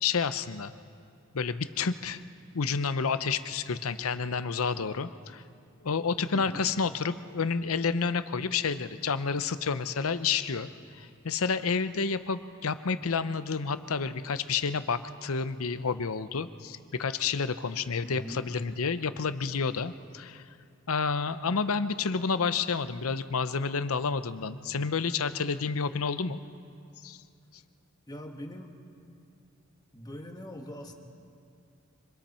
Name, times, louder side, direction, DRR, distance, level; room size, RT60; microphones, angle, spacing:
voice 1, 0.0-0.7 1.3-2.2 2.5-5.4 5.8-20.4 20.9-26.4 27.0-27.2, left 5 dB, 75° left, 12 dB, 0.7 m, -30 dB
voice 2, 6.3-6.7 18.0-18.5 28.1-28.7 29.9-30.9, equal, 20° left, 2 dB, 1.8 m, -42 dB
25.5 x 25.5 x 4.4 m, 2.5 s
head